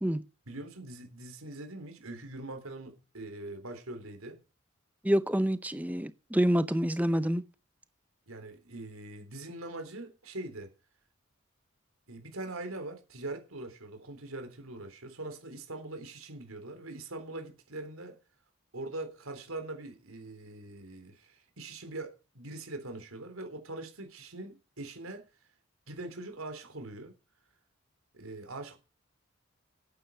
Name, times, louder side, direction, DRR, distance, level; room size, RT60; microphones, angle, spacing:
voice 1, 0.5-4.4 8.3-10.7 12.1-18.2 18.7-25.3 25.9-27.1 28.1-28.8, right 2 dB, 85° right, 3.7 m, -42 dB
voice 2, 5.0-7.4, equal, 5° right, 0.6 m, -27 dB
11.5 x 9.3 x 6.5 m
head